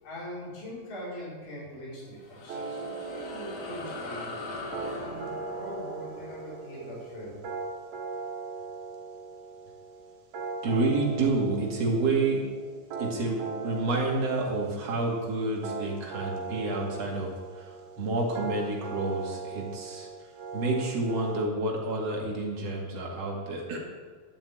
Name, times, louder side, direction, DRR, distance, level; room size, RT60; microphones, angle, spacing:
voice 1, 0.0-4.3 4.9-7.4, equal, 60° left, -8 dB, 6.0 m, -41 dB
sound 1, 2.0-8.8, left 2 dB, 75° left, 3.7 m, -42 dB
sound 2, 2.5-21.4, right 4 dB, 65° right, 3.6 m, -39 dB
voice 2, 10.6-12.4 13.0-17.3 18.0-20.1 20.5-23.8, right 2 dB, 45° right, -2 dB, 3.2 m, -29 dB
12.0 x 7.1 x 8.7 m, 1.5 s
omnidirectional pair, 4.3 m